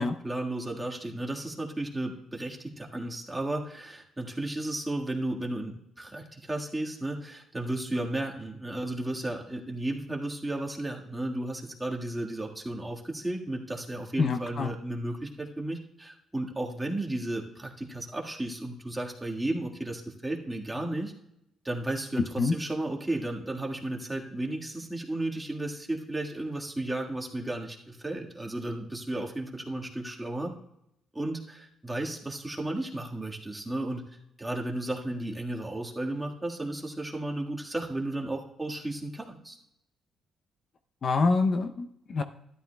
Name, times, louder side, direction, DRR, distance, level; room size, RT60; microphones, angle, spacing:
voice 1, 0.0-21.1 21.6-30.5 31.1-39.6, right 1 dB, 10° right, -1 dB, 1.6 m, -34 dB
voice 2, 14.2-14.7 22.4-22.5 41.0-42.2, left 4 dB, 50° left, 8 dB, 0.6 m, -26 dB
13.0 x 11.5 x 2.3 m, 0.79 s
cardioid pair, 90°, 0 cm